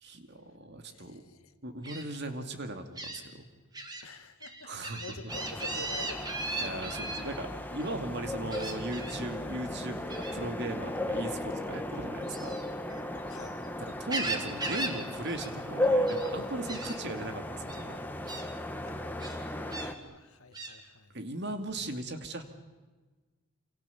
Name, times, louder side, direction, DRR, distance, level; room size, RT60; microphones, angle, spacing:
voice 1, 0.0-1.2 1.6-3.5 4.6-5.0 6.6-12.6 13.8-18.1 21.1-22.4, right 2 dB, 50° right, 2.4 m, -38 dB
voice 2, 0.9-1.5 4.0-4.7 5.0-6.6 13.3-13.6 18.8-21.1, left 3 dB, 75° left, 2.0 m, -48 dB
Gull seagull, 1.8-2.0 3.0-3.2 3.7-4.0 4.4-7.2 8.5-9.2 10.1-10.4 12.2-13.5 13.9-15.0 15.3-15.5 15.8-16.3 16.7-17.0 17.7-17.8 18.3-18.5 19.2-19.9 20.5-20.7, right 2 dB, 20° right, 2.7 m, -37 dB
sound 1, 5.3-19.9, left 1 dB, 10° left, 1.4 m, -35 dB
28.0 x 27.0 x 7.1 m
head